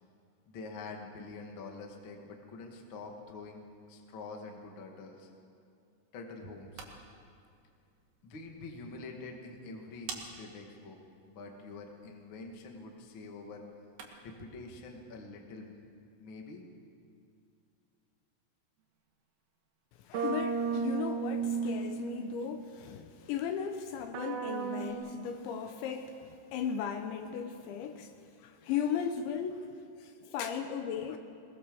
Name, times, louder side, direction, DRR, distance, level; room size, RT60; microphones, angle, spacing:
voice 1, 0.4-3.6 3.9-5.3 6.1-6.9 8.2-11.0 11.2-13.6 14.2-15.7 16.2-16.6, left 3 dB, 55° left, 2 dB, 1.4 m, -46 dB
sound 1, 6.5-14.4, right 5 dB, 60° right, 3.7 m, -52 dB
voice 2, 20.0-28.1 28.4-29.7 30.0-31.2, left 7 dB, 75° left, 6 dB, 3.0 m, -36 dB
sound 2, 20.1-22.5 24.1-24.9, right 6 dB, 80° right, 3.8 m, -34 dB
22.0 x 20.5 x 7.1 m, 2.5 s
omnidirectional pair, 5.9 m